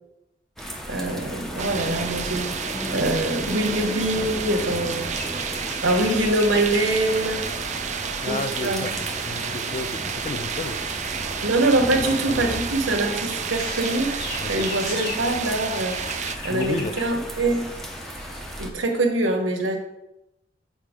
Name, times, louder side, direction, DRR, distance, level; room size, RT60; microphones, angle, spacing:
sound 1, 0.6-18.7, equal, ahead, 0.8 m, -35 dB
voice 1, 0.9-5.1 5.8-7.5 8.3-8.9 11.4-14.2 14.4-16.0 16.4-17.7 18.6-19.8, right 2 dB, 75° right, 3 dB, 1.2 m, -24 dB
sound 2, 1.6-16.4, right 7 dB, 40° right, 0.4 m, -31 dB
sound 3, 5.1-18.5, left 2 dB, 55° left, 2.0 m, -41 dB
voice 2, 8.2-10.8 11.9-12.6 14.4-14.7 16.5-17.0, left 3 dB, 35° left, 9 dB, 0.3 m, -32 dB
8.4 x 4.5 x 3.6 m, 0.90 s
head